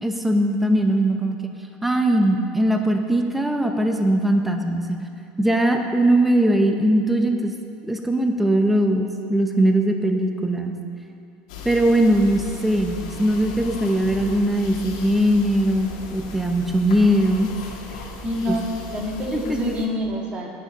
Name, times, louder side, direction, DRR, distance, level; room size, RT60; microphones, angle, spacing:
voice 1, 0.0-1.4 1.8-5.0 5.4-7.5 7.8-10.7 11.6-17.5 18.5-18.6 19.3-19.6, right 1 dB, 5° right, 3 dB, 0.8 m, -20 dB
sound 1, 11.5-19.9, left 3 dB, 90° left, 1.8 m, -37 dB
voice 2, 18.2-20.6, left 1 dB, 30° right, -1 dB, 2.2 m, -27 dB
10.0 x 6.7 x 8.8 m, 2.4 s
supercardioid pair, 135°, 4 cm